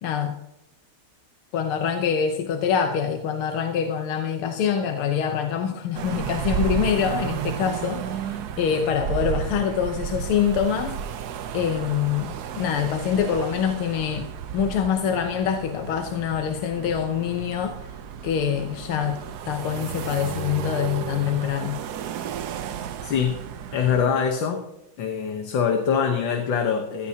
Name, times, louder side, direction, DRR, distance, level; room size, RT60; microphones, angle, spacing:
voice 1, 0.0-0.4 1.5-11.0 11.5-14.3 14.5-17.9 18.2-19.2 19.4-21.8, left 8 dB, 80° left, 5 dB, 1.8 m, -25 dB
sound 1, 5.9-24.1, right 9 dB, 65° right, 1.0 m, -33 dB
voice 2, 23.0-24.6 25.0-27.1, left 7 dB, 65° left, 4 dB, 1.8 m, -24 dB
16.0 x 14.5 x 2.8 m, 0.91 s
omnidirectional pair, 2.4 m